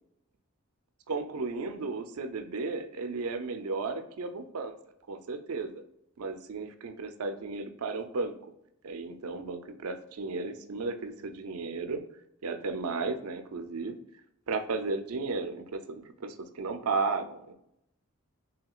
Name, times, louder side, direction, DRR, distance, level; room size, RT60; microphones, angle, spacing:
voice 1, 1.1-4.7 5.1-5.7 6.2-8.4 8.8-12.0 12.4-14.0 14.5-17.5, right 3 dB, 85° right, 7 dB, 0.5 m, -34 dB
5.8 x 2.8 x 2.4 m, 0.79 s
head